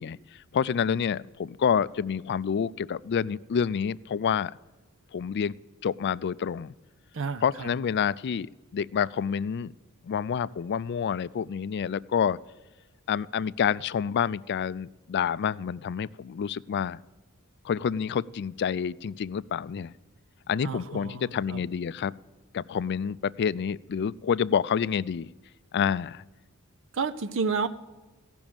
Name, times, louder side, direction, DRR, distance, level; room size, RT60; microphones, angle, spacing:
voice 1, 0.0-4.5 5.1-5.5 5.8-6.7 7.4-9.7 10.0-12.4 13.1-17.0 17.6-19.9 20.5-22.1 22.5-25.3 25.7-26.2, left 7 dB, 50° left, 19 dB, 0.4 m, -28 dB
voice 2, 7.1-7.7 20.6-21.6 26.9-27.7, right 5 dB, 60° right, 10 dB, 0.6 m, -31 dB
16.0 x 6.2 x 8.8 m, 1.2 s
head